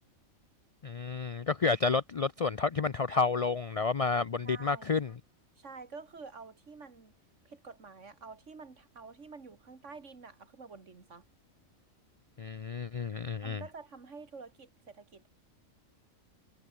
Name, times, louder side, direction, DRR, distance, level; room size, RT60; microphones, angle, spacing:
voice 1, 0.8-5.1 12.4-13.6, left 4 dB, 60° left, 0.3 m, -30 dB
voice 2, 4.4-5.0 5.6-7.1 7.4-11.2 13.4-15.3, right 4 dB, 60° right, 2.6 m, -49 dB
omnidirectional pair, 1.4 m